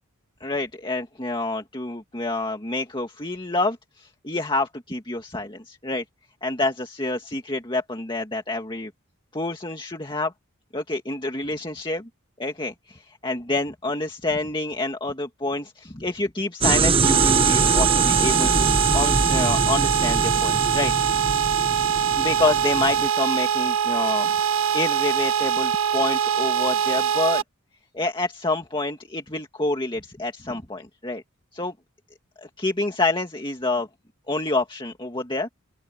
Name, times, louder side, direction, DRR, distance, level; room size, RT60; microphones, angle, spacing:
voice 1, 0.4-6.0 6.4-8.9 9.3-10.3 10.7-12.1 12.4-20.9 22.2-24.3 24.7-27.4 27.9-31.2 31.5-31.7 32.4-33.9 34.3-35.5, left 2 dB, 20° left, 2.1 m, -27 dB
sound 1, 16.6-23.1, right 4 dB, 25° right, 1.0 m, -23 dB
sound 2, 17.0-27.4, right 8 dB, 65° right, 1.7 m, -23 dB
open air
head